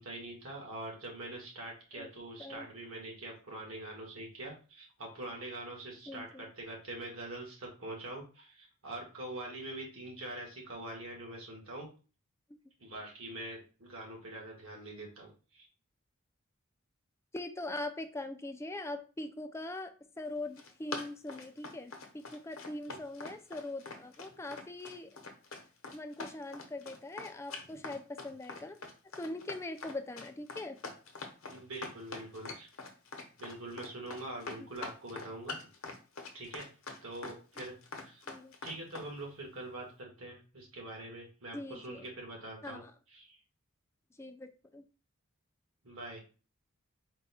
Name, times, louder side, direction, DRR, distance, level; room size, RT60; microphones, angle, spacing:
voice 1, 0.0-11.9 12.8-15.7 22.9-23.0 27.7-27.8 31.5-32.7 33.4-35.6 36.3-36.8 37.0-37.8 38.0-38.2 38.6-42.8 43.1-43.4 45.8-46.2, right 1 dB, 65° right, 1.6 m, -44 dB
voice 2, 6.1-6.5 17.3-25.1 25.9-28.8 29.2-30.8 34.6-34.7 38.3-38.5 41.5-42.1 42.6-42.9 44.2-44.8, left 2 dB, 10° left, 0.3 m, -42 dB
Run, 20.4-39.1, left 3 dB, 70° left, 0.9 m, -44 dB
4.3 x 2.2 x 4.2 m
head